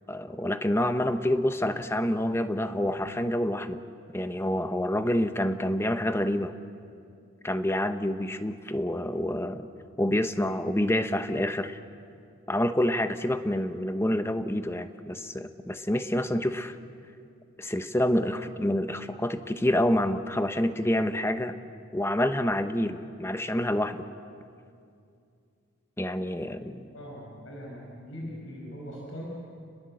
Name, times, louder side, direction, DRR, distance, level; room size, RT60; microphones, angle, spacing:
voice 1, 0.1-3.8 4.1-6.5 7.4-9.7 10.0-11.8 12.5-16.8 17.6-21.5 21.9-24.0 26.0-26.8, left 1 dB, 10° left, 9 dB, 0.9 m, -27 dB
voice 2, 26.6-29.2, equal, 65° left, -2 dB, 5.9 m, -41 dB
30.0 x 21.0 x 7.8 m, 2.5 s
head